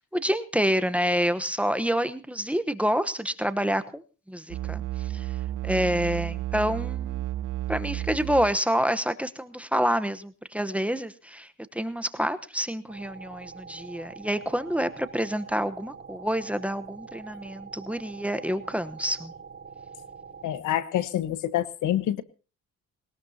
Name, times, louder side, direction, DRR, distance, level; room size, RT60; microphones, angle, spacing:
voice 1, 0.1-4.0 4.3-5.3 5.6-7.2 7.7-19.3, equal, 5° right, 10 dB, 1.0 m, -28 dB
sound 1, 4.5-8.6, right 13 dB, 90° right, 1.6 m, -32 dB
sound 2, 12.9-20.6, right 5 dB, 35° right, 6.0 m, -45 dB
voice 2, 20.4-22.2, left 12 dB, 80° left, 14 dB, 1.2 m, -27 dB
20.5 x 18.5 x 2.8 m, 0.34 s
cardioid pair, 90°, 30 cm